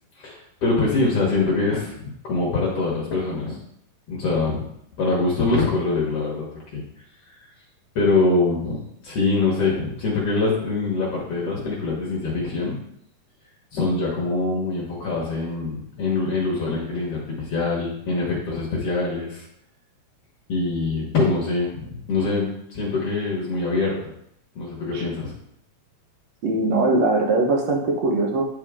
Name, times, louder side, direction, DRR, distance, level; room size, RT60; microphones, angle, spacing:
voice 1, 0.2-3.6 4.1-4.7 5.0-6.8 7.3-7.4 7.9-12.8 13.7-19.4 20.5-24.0 24.5-25.3, left 3 dB, 60° left, -4 dB, 1.6 m, -24 dB
voice 2, 26.4-28.4, right 2 dB, 80° right, 1 dB, 1.5 m, -21 dB
10.5 x 4.6 x 3.6 m, 0.74 s
omnidirectional pair, 4.6 m